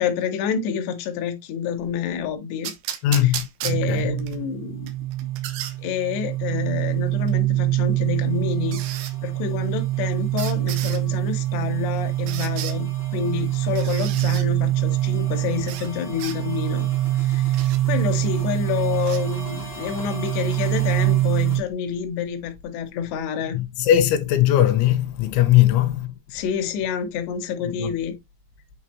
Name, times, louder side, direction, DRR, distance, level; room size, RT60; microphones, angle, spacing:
voice 1, 0.0-2.7 3.2-3.3 3.6-4.9 5.8-16.9 17.2-17.6 17.9-23.6 26.3-28.2, left 8 dB, 75° left, 3.0 m, -28 dB
sound 1, 2.6-4.4 4.9-5.8 7.3-7.4 8.7-9.1 10.4-11.0 12.3-12.8 13.7-14.5 15.7-15.9 16.2-16.4 17.5-17.8 19.0-19.2, right 11 dB, 85° right, 3.4 m, -33 dB
voice 2, 3.0-3.5 3.9-4.1 23.5-26.1 27.8-27.9, left 12 dB, 90° left, 3.3 m, -19 dB
sound 2, 3.6-21.6, right 15 dB, 35° left, 0.8 m, -24 dB
8.8 x 3.9 x 2.9 m
omnidirectional pair, 5.2 m